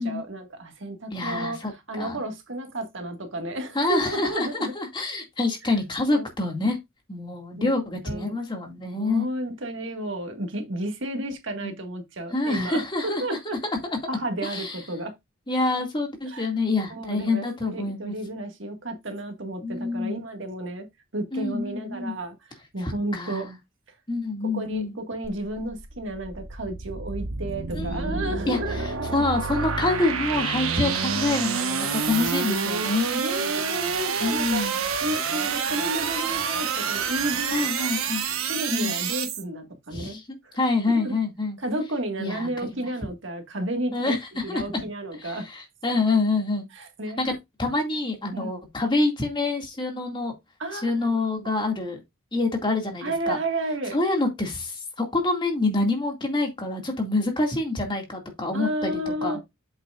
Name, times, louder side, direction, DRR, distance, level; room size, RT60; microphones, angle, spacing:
voice 1, 0.0-4.7 5.6-5.8 6.1-6.3 7.6-7.7 8.0-8.4 9.0-13.6 14.1-15.1 16.2-16.5 16.9-20.9 21.1-23.5 24.5-29.2 33.2-34.7 35.0-38.0 38.5-40.6 40.9-41.1 41.6-44.1 44.4-45.5 46.7-47.3 48.3-48.5 50.6-51.2 53.0-54.0 58.5-59.4, right 1 dB, 60° right, 1.8 m, -32 dB
voice 2, 1.1-1.7 2.0-2.2 3.7-6.8 7.1-9.3 11.6-11.8 12.3-13.6 13.8-14.0 14.4-14.8 15.5-18.2 19.6-20.2 21.3-22.1 22.8-23.5 24.1-24.9 27.7-28.6 29.1-33.2 34.2-34.8 37.5-38.2 38.7-38.9 39.9-40.2 40.5-41.6 42.2-42.9 43.9-44.2 44.5-44.6 45.2-46.7 47.2-50.4 50.7-52.0 52.3-53.4 53.9-59.4, left 2 dB, 25° left, 2.2 m, -26 dB
sound 1, 25.2-39.4, right 5 dB, 90° right, 1.3 m, -28 dB
8.0 x 7.0 x 2.5 m
head